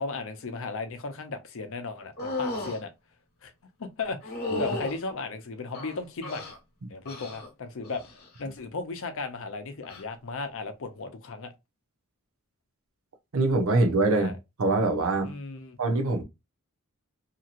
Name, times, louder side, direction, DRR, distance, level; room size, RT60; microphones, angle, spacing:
voice 1, 0.0-2.9 3.4-3.5 3.8-6.5 6.9-8.0 8.4-11.5 14.1-14.4 15.2-15.8, left 3 dB, 65° left, 0.6 m, -36 dB
sound 1, 2.2-2.8 4.2-5.0 5.7-6.6 7.1-7.5 7.8-8.3 9.8-10.0, left 2 dB, 45° left, 1.2 m, -34 dB
voice 2, 13.3-14.3 14.6-15.3 15.8-16.2, right 2 dB, 65° right, 0.7 m, -24 dB
2.8 x 2.8 x 2.4 m
head